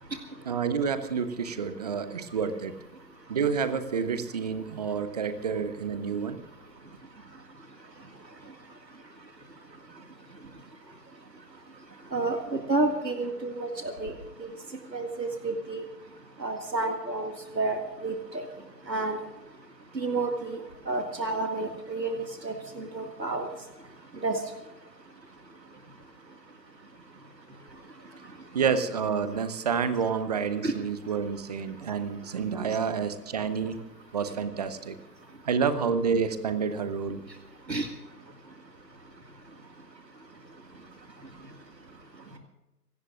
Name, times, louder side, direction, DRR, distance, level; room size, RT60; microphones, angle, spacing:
voice 1, 0.4-2.7 3.3-6.4 28.5-33.8 34.1-35.0 35.4-37.2, right 6 dB, 25° right, 11 dB, 0.9 m, -29 dB
voice 2, 12.7-14.1 14.4-14.5 14.9-15.9 16.4-18.4 18.9-19.2 20.0-20.6 20.9-23.5 24.2-24.4 30.6-30.7 37.7-37.9, right 3 dB, 85° right, 4 dB, 2.2 m, -30 dB
26.5 x 17.5 x 2.5 m, 1.0 s
figure-of-eight pair, 140°, 49 cm